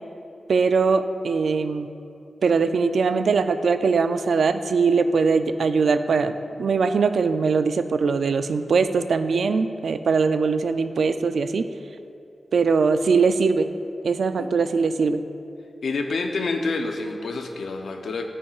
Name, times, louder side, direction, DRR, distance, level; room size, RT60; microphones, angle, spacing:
voice 1, 0.5-1.9 2.4-11.6 12.5-13.7 14.0-15.2, right 4 dB, 80° right, 10 dB, 0.3 m, -21 dB
voice 2, 15.8-18.2, left 3 dB, 80° left, 4 dB, 0.6 m, -28 dB
9.5 x 8.6 x 2.4 m, 2.6 s
wide cardioid pair, 160°, 0 cm